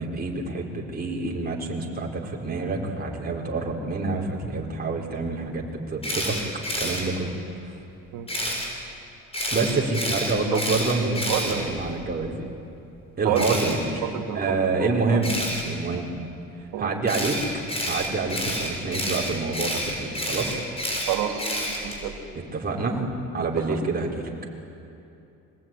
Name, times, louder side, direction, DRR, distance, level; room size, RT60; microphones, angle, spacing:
voice 1, 0.0-6.4 6.8-7.3 7.7-7.8 9.5-12.5 13.2-15.4 15.6-16.1 16.8-17.4 17.8-20.6 22.5-23.1 23.3-24.3, right 3 dB, 30° right, -2 dB, 4.9 m, -27 dB
Camera, 6.0-7.0 8.3-8.7 9.3-12.1 13.3-13.7 15.2-15.6 17.1-22.0, equal, 20° left, 7.3 m, -29 dB
voice 2, 11.3-11.7 13.2-13.7 14.0-15.2 16.7-16.9 21.1-21.4 21.7-22.1 23.7-23.8, right 10 dB, 85° right, 3 dB, 3.0 m, -29 dB
25.0 x 19.5 x 9.4 m, 2.7 s
cardioid pair, 95°, 30 cm